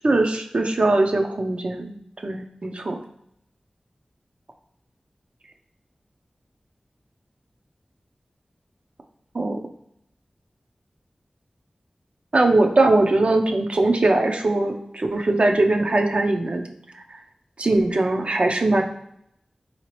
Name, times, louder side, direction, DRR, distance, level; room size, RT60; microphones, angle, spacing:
voice 1, 0.0-1.9 2.2-3.0 9.3-9.6 12.3-16.6 17.6-18.8, right 2 dB, 60° right, 3 dB, 0.6 m, -20 dB
3.9 x 2.8 x 3.0 m, 0.75 s
cardioid pair, 40°, 2 cm